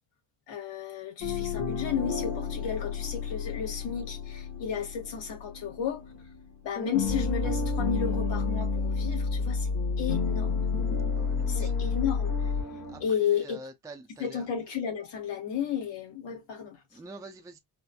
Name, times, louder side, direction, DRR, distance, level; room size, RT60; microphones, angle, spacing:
voice 1, 0.5-6.0 6.6-9.7 10.0-10.7 11.5-12.5 13.0-13.6 14.2-16.8, left 8 dB, 75° left, 2.0 m, -33 dB
sound 1, 1.2-6.4 6.7-13.0, left 5 dB, 55° left, 2.0 m, -30 dB
voice 2, 11.2-11.7 12.9-13.0 13.4-14.4 16.9-17.6, right 2 dB, 10° right, 0.4 m, -45 dB
4.2 x 2.5 x 2.3 m
cardioid pair, 150°, 44 cm